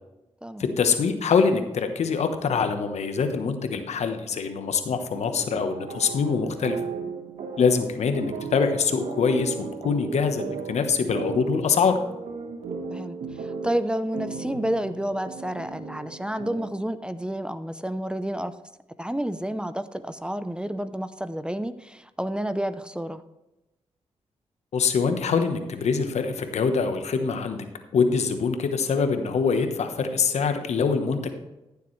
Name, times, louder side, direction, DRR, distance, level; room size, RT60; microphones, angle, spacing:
voice 1, 0.6-6.8 7.6-11.9 24.7-27.6 27.9-31.4, left 5 dB, 75° left, 7 dB, 1.1 m, -24 dB
sound 1, 5.1-16.9, right 5 dB, 80° right, 1.3 m, -36 dB
voice 2, 12.9-18.5 19.0-23.2, right 1 dB, 10° right, 12 dB, 0.6 m, -30 dB
14.0 x 7.1 x 3.2 m, 0.96 s
cardioid pair, 55°, 12 cm